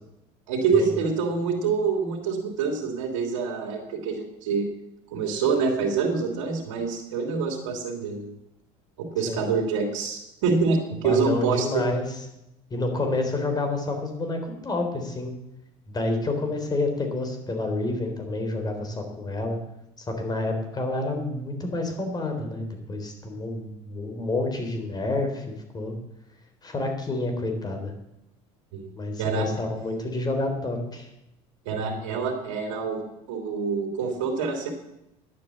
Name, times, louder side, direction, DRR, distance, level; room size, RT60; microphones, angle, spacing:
voice 1, 0.5-4.7 5.1-8.3 9.0-11.8 28.7-28.9 29.2-29.5 31.6-34.7, right 5 dB, 85° right, 1 dB, 2.8 m, -26 dB
voice 2, 9.3-9.6 11.0-12.2 12.7-15.4 15.9-19.6 20.0-26.0 26.6-27.9 29.0-31.1, left 2 dB, 25° left, 4 dB, 3.6 m, -29 dB
11.0 x 8.5 x 7.5 m, 0.85 s
supercardioid pair, 95°, 16 cm